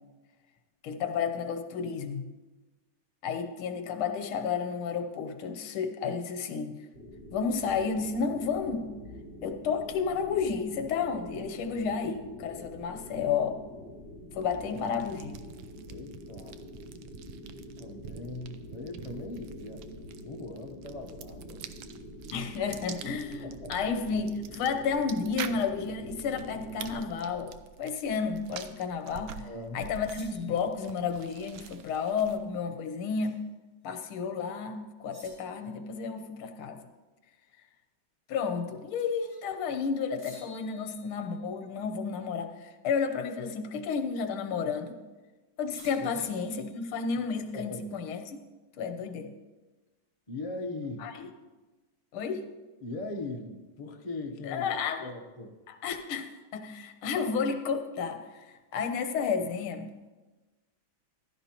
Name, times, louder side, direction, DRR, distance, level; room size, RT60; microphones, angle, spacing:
voice 1, 0.8-2.3 3.2-6.8 7.3-8.9 9.4-13.6 14.3-15.4 22.3-27.5 27.8-29.5 29.7-33.4 33.8-36.8 38.3-45.0 45.6-48.4 48.8-49.3 51.0-51.3 52.1-52.5 54.4-55.1 55.7-58.4 58.7-59.9, left 6 dB, 85° left, 6 dB, 1.7 m, -32 dB
sound 1, 6.9-26.9, equal, 35° right, 4.9 m, -46 dB
sound 2, 14.4-32.6, right 8 dB, 75° right, 1.3 m, -47 dB
voice 2, 15.9-16.6 17.8-19.8 20.2-21.6 23.6-23.7 29.4-29.8 46.0-46.3 47.5-47.9 50.3-51.1 52.8-54.7 55.0-55.5, left 2 dB, 65° left, 2 dB, 0.3 m, -40 dB
sound 3, 28.6-28.7 30.0-30.7 33.2-33.5 33.8-33.9 35.1-35.7 39.0-39.5 40.2-41.6 43.9-44.3 45.7-47.1, left 1 dB, 15° right, 4.3 m, -54 dB
15.0 x 12.0 x 2.9 m, 1.2 s
omnidirectional pair, 2.3 m